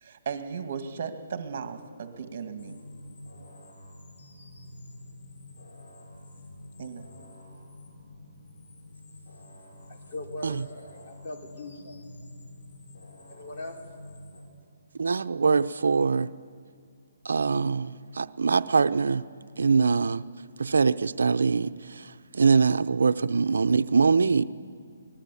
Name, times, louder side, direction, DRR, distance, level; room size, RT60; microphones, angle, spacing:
voice 1, 0.0-2.8 6.8-7.1, right 6 dB, 50° right, 7 dB, 2.2 m, -36 dB
sound 1, 2.6-14.4, left 1 dB, 70° left, 6.8 m, -48 dB
voice 2, 9.9-12.0 13.3-13.8, left 2 dB, 35° left, -1 dB, 4.4 m, -40 dB
voice 3, 15.0-16.3 17.2-19.2 19.6-20.2 20.6-22.1 22.3-24.4, right 4 dB, 80° right, 11 dB, 0.7 m, -23 dB
24.0 x 19.5 x 8.5 m, 2.3 s
hypercardioid pair, 160°, 0 cm